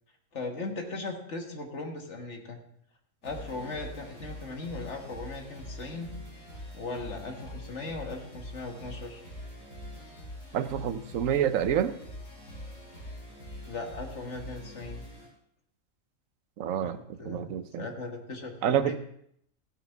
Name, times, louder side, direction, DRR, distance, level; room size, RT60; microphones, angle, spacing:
voice 1, 0.3-2.6 3.2-6.1 6.7-9.2 13.7-15.0 16.8-19.0, left 3 dB, 60° left, 3 dB, 1.8 m, -38 dB
sound 1, 3.2-15.3, left 1 dB, 90° left, 5.4 m, -44 dB
voice 2, 10.5-12.0 16.6-17.0 17.2-17.9 18.6-19.0, right 9 dB, 80° right, 12 dB, 1.0 m, -28 dB
15.0 x 9.2 x 3.4 m, 0.70 s
omnidirectional pair, 1.4 m